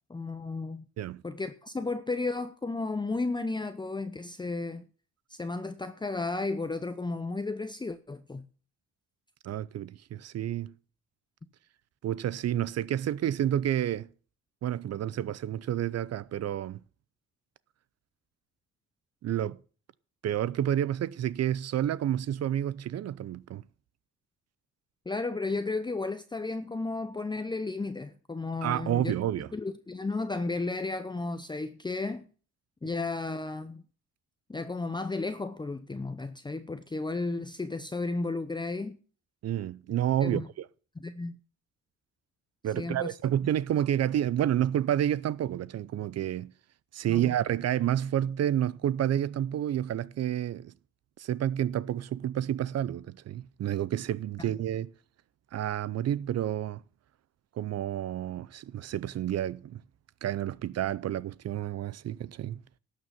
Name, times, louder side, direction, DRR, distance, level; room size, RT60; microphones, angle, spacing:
voice 1, 0.1-0.9 1.2-4.9 5.3-8.5 25.1-29.1 29.5-32.3 32.8-33.8 34.5-39.0 40.2-40.5 41.0-41.3 42.8-43.1 47.1-47.3, left 3 dB, 15° left, 0.7 m, -33 dB
voice 2, 9.4-10.7 12.0-14.1 14.6-16.8 19.2-19.6 20.2-23.6 28.6-29.5 39.4-40.7 42.6-46.5 46.9-50.7 51.2-54.9 55.5-56.8 57.6-59.8 60.2-62.6, right 11 dB, 55° right, 0.6 m, -29 dB
12.0 x 6.7 x 7.1 m
cardioid pair, 90°, 30 cm